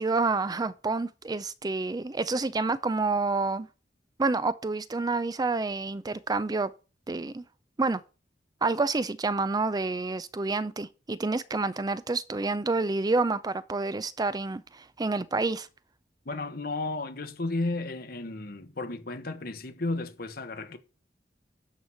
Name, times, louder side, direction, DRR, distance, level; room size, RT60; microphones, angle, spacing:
voice 1, 0.0-3.7 4.2-6.7 7.1-7.4 7.8-8.0 8.6-15.7, right 3 dB, 20° right, 0.4 m, -28 dB
voice 2, 16.2-20.8, left 2 dB, 60° left, 1.3 m, -33 dB
12.0 x 4.8 x 5.7 m
head